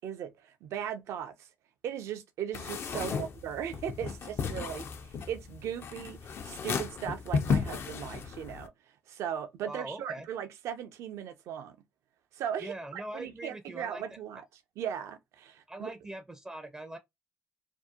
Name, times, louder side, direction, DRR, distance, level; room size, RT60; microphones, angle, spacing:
voice 1, 0.0-1.5 1.8-11.8 12.3-14.4 14.8-15.9, right 9 dB, 70° right, 0.4 m, -38 dB
sound 1, 2.5-8.7, left 5 dB, 55° left, 0.4 m, -34 dB
voice 2, 9.6-10.3 12.6-14.2 15.7-17.0, right 1 dB, 15° right, 0.4 m, -42 dB
2.7 x 2.0 x 2.3 m
supercardioid pair, 60°, 5 cm